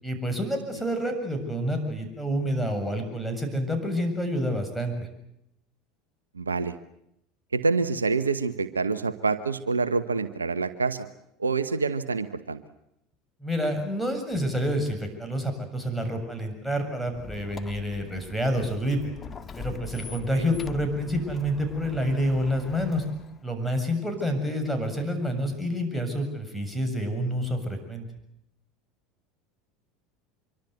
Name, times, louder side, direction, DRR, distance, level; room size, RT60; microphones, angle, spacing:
voice 1, 0.0-4.9 13.4-19.1 19.6-23.0 23.4-28.1, equal, ahead, 4 dB, 7.4 m, -28 dB
voice 2, 6.3-6.8 7.5-11.1 11.4-12.6 20.3-20.4, right 4 dB, 90° right, 13 dB, 1.0 m, -26 dB
Squeak, 17.0-23.5, left 6 dB, 30° left, 1.9 m, -42 dB
25.5 x 24.0 x 8.1 m, 0.80 s
figure-of-eight pair, 75°, 0 cm